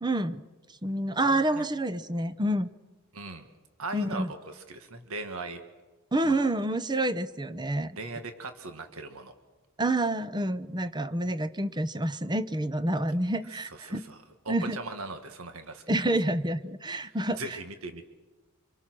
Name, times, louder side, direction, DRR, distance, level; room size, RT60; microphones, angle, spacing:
voice 1, 0.0-0.4 0.8-2.7 3.9-4.3 6.1-8.0 9.8-14.0 14.5-14.8 15.9-17.6, right 1 dB, 20° right, 13 dB, 0.9 m, -28 dB
voice 2, 1.2-1.7 3.1-3.4 3.8-5.6 6.2-6.5 8.0-9.3 13.8-14.2 14.5-15.8 17.4-18.0, right 3 dB, 70° right, 7 dB, 1.9 m, -39 dB
26.0 x 24.5 x 6.2 m, 1.2 s
head